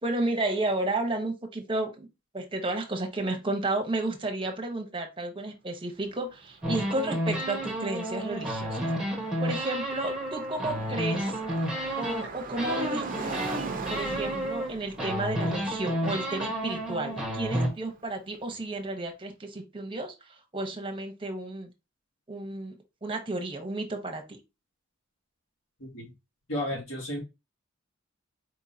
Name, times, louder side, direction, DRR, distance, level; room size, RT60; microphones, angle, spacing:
voice 1, 0.0-2.1 2.3-8.9 9.4-11.4 12.0-13.4 13.9-21.7 22.3-22.7 23.0-24.2, right 2 dB, 25° right, 3 dB, 1.1 m, -32 dB
Car passing by, 6.1-18.1, right 4 dB, 45° right, 0.7 m, -42 dB
sound 1, 6.6-12.3 12.6-14.7 15.0-17.7, equal, 5° right, 1.3 m, -31 dB
voice 2, 25.8-26.1 26.5-27.2, left 1 dB, 75° left, -3 dB, 2.3 m, -33 dB
4.5 x 3.8 x 2.8 m, 0.26 s
head